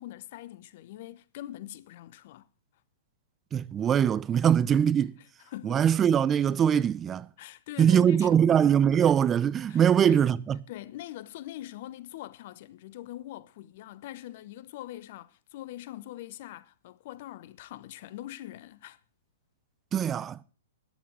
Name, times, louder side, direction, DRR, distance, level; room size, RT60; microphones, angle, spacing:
voice 1, 0.0-2.5 5.5-5.8 7.4-8.4 9.7-10.2 10.7-19.0, left 14 dB, 50° left, 0.9 m, -43 dB
voice 2, 3.5-5.1 5.6-7.3 7.8-10.6 19.9-20.4, right 8 dB, 20° right, 0.6 m, -22 dB
13.5 x 10.5 x 6.3 m
hypercardioid pair, 115°, 0 cm